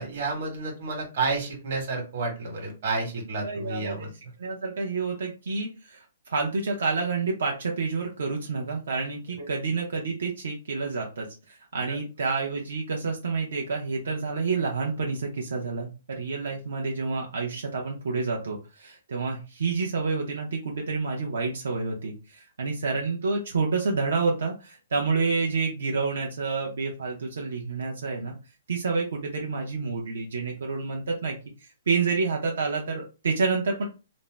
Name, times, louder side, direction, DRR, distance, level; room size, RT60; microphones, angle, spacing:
voice 1, 0.0-4.1 9.4-9.5 11.9-12.0, right 3 dB, 50° right, 1 dB, 1.1 m, -30 dB
voice 2, 3.4-4.1 4.4-6.0 6.3-28.4 28.7-31.4 31.9-33.8, right 4 dB, 80° right, 0 dB, 0.7 m, -29 dB
2.6 x 2.0 x 3.2 m, 0.31 s
hypercardioid pair, 175°, 0 cm